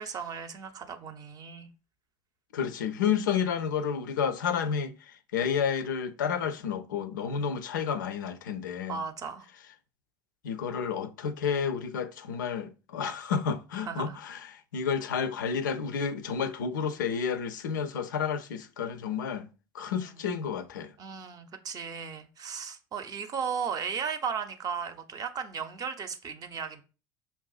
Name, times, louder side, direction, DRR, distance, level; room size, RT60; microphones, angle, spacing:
voice 1, 0.0-1.7 8.9-9.5 13.9-14.2 20.1-20.2 21.0-26.8, right 6 dB, 35° right, 0.6 m, -36 dB
voice 2, 2.5-9.0 10.4-19.5 19.7-20.9, left 7 dB, 75° left, 0.4 m, -31 dB
5.4 x 2.4 x 2.4 m
figure-of-eight pair, 65°, 10 cm